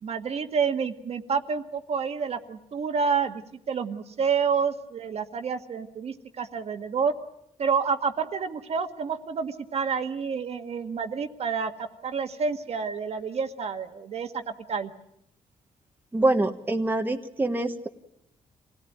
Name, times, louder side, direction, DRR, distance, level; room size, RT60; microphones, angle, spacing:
voice 1, 0.0-7.1 7.6-14.9, right 6 dB, 55° right, 6 dB, 1.7 m, -29 dB
voice 2, 16.1-17.9, right 2 dB, 15° right, 5 dB, 1.4 m, -25 dB
26.5 x 17.5 x 9.3 m, 0.80 s
cardioid pair, 105°, 13 cm